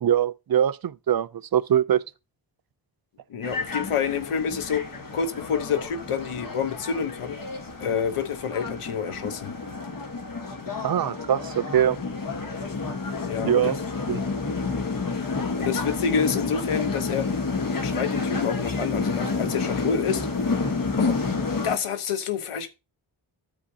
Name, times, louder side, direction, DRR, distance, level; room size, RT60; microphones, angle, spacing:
voice 1, 0.0-2.0 10.8-12.0 13.4-13.8 14.1-14.2, right 10 dB, 50° right, 0.5 m, -22 dB
voice 2, 3.3-7.4 7.8-9.5 13.3-13.7 15.6-17.4 17.8-20.3 21.0-21.2 21.6-22.7, left 7 dB, 90° left, 1.1 m, -28 dB
sound 1, 3.4-21.8, left 4 dB, 40° left, 1.4 m, -30 dB
14.0 x 5.1 x 2.8 m
cardioid pair, 60°, 50 cm